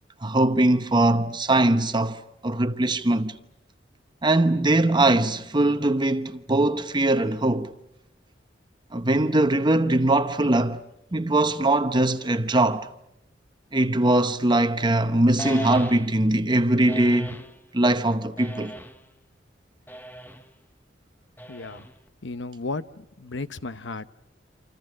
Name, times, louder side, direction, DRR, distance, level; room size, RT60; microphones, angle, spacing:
voice 1, 0.2-3.3 4.2-7.7 8.9-10.8 11.1-12.9 13.7-17.4 17.7-18.7, right 2 dB, 25° right, 0.9 m, -21 dB
sound 1, 15.4-16.3 16.9-17.6 18.4-19.1 19.9-20.5 21.4-22.1, left 1 dB, 10° left, 1.2 m, -38 dB
voice 2, 21.5-21.9 22.2-24.1, left 3 dB, 75° left, 0.9 m, -34 dB
28.5 x 27.0 x 6.3 m
head